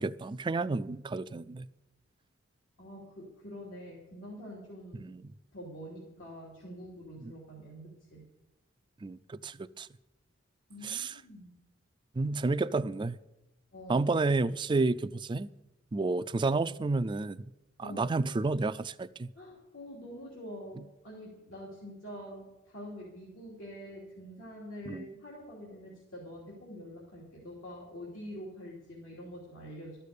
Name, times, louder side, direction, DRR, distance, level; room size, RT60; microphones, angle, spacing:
voice 1, 0.0-1.7 5.0-5.3 9.0-9.9 10.8-11.2 12.2-13.2 13.9-15.5 15.9-17.4 17.8-19.3 24.9-25.1, right 3 dB, 25° right, 0.3 m, -30 dB
voice 2, 2.8-5.0 5.5-8.2 10.7-11.5 13.7-14.1 17.8-18.2 19.3-30.0, equal, 80° left, 3.0 m, -46 dB
13.0 x 6.7 x 8.3 m
head